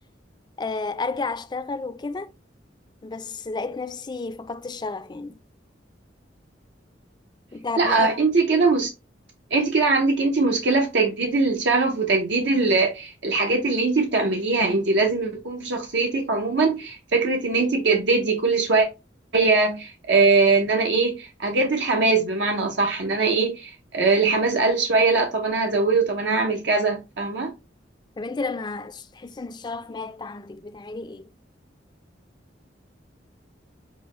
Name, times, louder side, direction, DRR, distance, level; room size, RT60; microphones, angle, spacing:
voice 1, 0.6-2.3 3.0-5.4 7.5-8.3 28.2-31.3, left 3 dB, 25° left, 0.4 m, -32 dB
voice 2, 7.8-8.9 9.5-18.9 19.3-27.5, right 3 dB, 70° right, 0.6 m, -21 dB
6.0 x 2.1 x 3.1 m
head